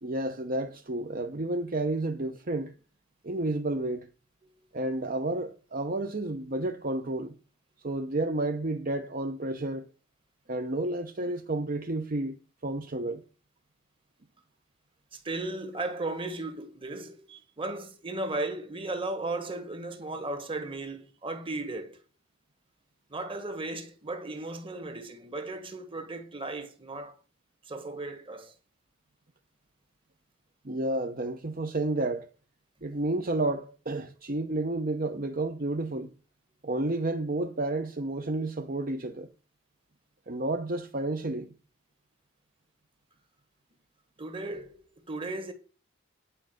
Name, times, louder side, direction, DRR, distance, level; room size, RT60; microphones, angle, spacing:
voice 1, 0.0-2.7 3.2-4.1 4.7-7.4 7.8-9.9 10.5-12.4 12.6-13.2 30.6-32.3 32.8-36.1 36.6-39.3 40.3-41.5, right 2 dB, 45° right, 0.9 m, -31 dB
voice 2, 15.1-22.0 23.1-27.1 27.6-28.5 44.2-45.5, right 2 dB, 25° right, 1.7 m, -36 dB
10.0 x 5.1 x 7.8 m
head